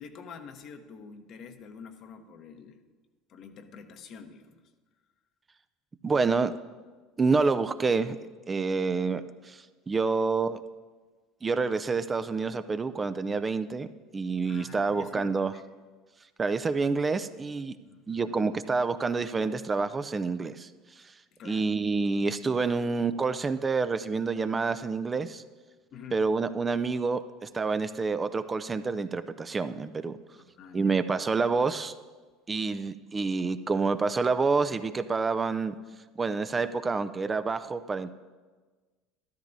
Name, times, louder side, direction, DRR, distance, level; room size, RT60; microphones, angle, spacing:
voice 1, 0.0-2.8 3.3-4.6 14.4-15.6 17.8-18.5 21.3-21.7 25.9-26.2 30.4-31.1, left 6 dB, 50° left, 7 dB, 1.0 m, -47 dB
voice 2, 6.0-6.5 7.2-8.2 8.5-10.6 11.4-13.9 14.1-15.5 16.4-17.8 18.1-20.7 21.0-21.1 21.4-25.4 26.1-30.2 30.7-31.9 32.5-35.8 36.2-38.1, right 4 dB, 25° right, 11 dB, 0.5 m, -28 dB
13.0 x 13.0 x 2.7 m, 1.4 s
hypercardioid pair, 70°, 0 cm